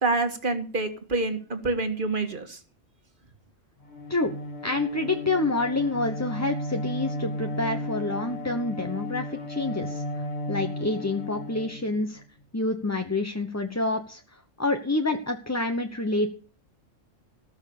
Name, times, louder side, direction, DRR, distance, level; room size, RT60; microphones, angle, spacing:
voice 1, 0.0-2.6, right 3 dB, 40° right, 7 dB, 2.1 m, -27 dB
Bowed string instrument, 3.8-12.2, left 1 dB, 35° left, 2.5 m, -34 dB
voice 2, 4.6-12.2 12.5-14.2 14.6-16.3, left 2 dB, 15° left, 5 dB, 1.0 m, -28 dB
19.0 x 6.5 x 6.7 m, 0.40 s
omnidirectional pair, 1.3 m